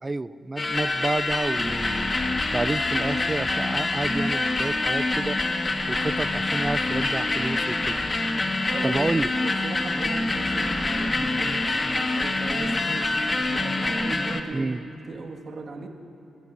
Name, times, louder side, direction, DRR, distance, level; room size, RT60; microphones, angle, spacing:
voice 1, 0.0-2.1 2.5-5.4 5.9-8.0 8.8-9.3 14.5-14.8, right 2 dB, 30° right, 15 dB, 0.4 m, -29 dB
sound 1, 0.6-14.4, left 2 dB, 35° left, 1.2 m, -26 dB
voice 2, 8.7-14.8 15.1-15.9, right 3 dB, 50° right, 1 dB, 1.7 m, -37 dB
27.5 x 11.5 x 2.6 m, 3.0 s
hypercardioid pair, 40°, 0 cm